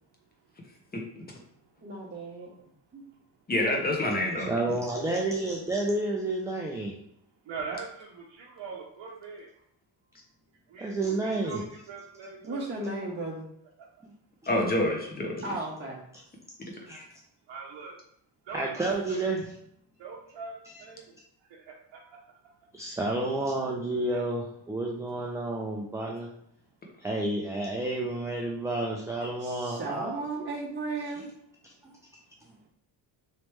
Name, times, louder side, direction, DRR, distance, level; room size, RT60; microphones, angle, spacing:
voice 1, 0.9-1.2 3.5-4.5 14.5-15.4, left 1 dB, 20° left, 1 dB, 0.8 m, -27 dB
voice 2, 1.8-2.5 2.9-3.0 12.4-13.5 15.4-16.0 29.4-31.3, right 2 dB, 25° right, -4 dB, 0.7 m, -35 dB
voice 3, 4.5-6.9 10.8-11.6 14.0-14.1 16.9-17.0 18.5-19.4 20.7-20.8 22.7-26.3 27.0-30.1 31.8-31.9, right 2 dB, 10° right, -1 dB, 0.3 m, -30 dB
voice 4, 7.4-9.5 10.7-12.7 17.5-18.0 18.4-19.3 20.0-21.1 21.4-22.2 22.5-22.6 24.1-24.2, right 4 dB, 75° right, -3 dB, 0.7 m, -42 dB
3.2 x 3.0 x 3.0 m, 0.70 s
cardioid pair, 100°, 44 cm